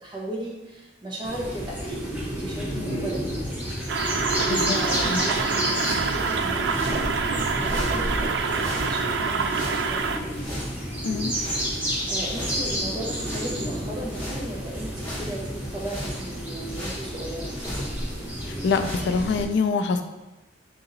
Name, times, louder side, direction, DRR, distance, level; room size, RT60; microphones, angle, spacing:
voice 1, 0.0-2.0 2.3-3.3 4.5-10.4 11.6-17.9, right 1 dB, 25° right, -3 dB, 0.6 m, -37 dB
sound 1, 1.2-19.4, equal, 10° right, 0.9 m, -30 dB
voice 2, 2.7-3.1 4.4-4.8 5.0-5.2 11.0-11.3 18.5-20.0, left 4 dB, 65° left, 8 dB, 0.3 m, -25 dB
sound 2, 3.9-10.2, right 5 dB, 70° right, 0.3 m, -26 dB
sound 3, 4.6-7.1 7.6-19.0, equal, 10° left, 1.5 m, -39 dB
3.9 x 2.8 x 3.9 m, 1.0 s
head